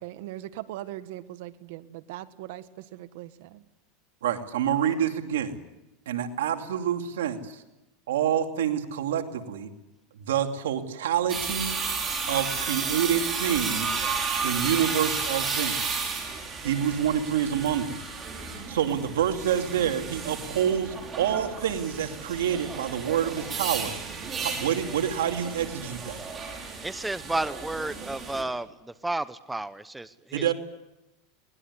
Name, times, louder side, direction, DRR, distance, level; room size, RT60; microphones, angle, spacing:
voice 1, 0.0-3.6, right 14 dB, 70° right, 11 dB, 1.6 m, -40 dB
voice 2, 4.2-5.6 6.1-7.6 8.1-9.7 10.1-11.8 12.3-14.0 14.4-16.1 16.6-18.0 18.7-23.9 24.4-26.2 30.3-30.5, right 9 dB, 90° right, 5 dB, 2.7 m, -27 dB
sound 1, 11.3-28.4, right 5 dB, 20° right, 5.8 m, -33 dB
voice 3, 26.8-28.7 29.0-30.4, right 2 dB, 5° right, 14 dB, 0.9 m, -31 dB
22.5 x 20.0 x 9.8 m, 0.95 s
supercardioid pair, 130°, 0 cm